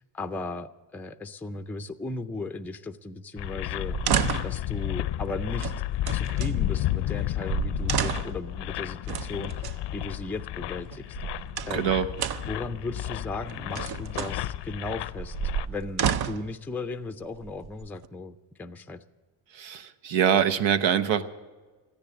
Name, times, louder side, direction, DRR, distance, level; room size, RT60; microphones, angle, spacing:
voice 1, 0.0-4.0 4.4-5.7 6.1-11.2 11.7-11.9 12.5-15.4 15.7-19.0, left 3 dB, 5° left, 8 dB, 0.4 m, -36 dB
sound 1, 3.4-15.7, left 13 dB, 65° left, 0.6 m, -32 dB
sound 2, 3.8-4.6 5.6-6.5 7.2-7.3 7.5-8.4 9.1-9.8 10.9-11.9 12.2-12.6 13.5-14.4 15.2-16.5 17.4-18.1, right 8 dB, 55° right, 0.7 m, -30 dB
voice 2, 11.7-12.1 19.5-21.2, right 8 dB, 80° right, 11 dB, 1.0 m, -24 dB
14.0 x 10.0 x 8.5 m, 1.3 s
cardioid pair, 100°, 45 cm